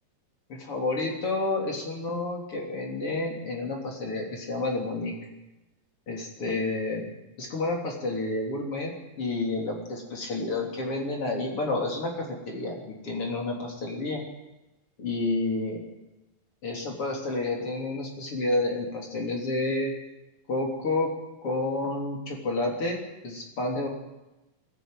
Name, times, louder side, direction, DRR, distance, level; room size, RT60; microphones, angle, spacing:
voice 1, 0.5-5.2 6.1-7.0 7.4-14.2 15.0-15.8 16.6-19.9 20.5-21.1 21.4-23.9, left 2 dB, 40° left, 0 dB, 3.9 m, -30 dB
20.0 x 15.0 x 9.0 m, 1.0 s
omnidirectional pair, 4.0 m